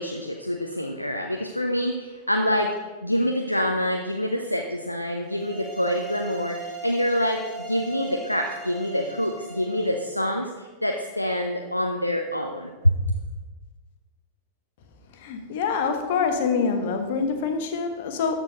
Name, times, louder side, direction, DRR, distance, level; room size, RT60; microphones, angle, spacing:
voice 1, 0.0-2.7 3.0-7.4 7.7-12.9, equal, 85° left, 3 dB, 0.6 m, -26 dB
sound 1, 5.2-10.0, right 4 dB, 5° right, 2.4 m, -39 dB
voice 2, 15.2-18.3, left 5 dB, 50° left, 6 dB, 1.3 m, -25 dB
13.0 x 4.5 x 5.2 m, 1.3 s
figure-of-eight pair, 90°, 0 cm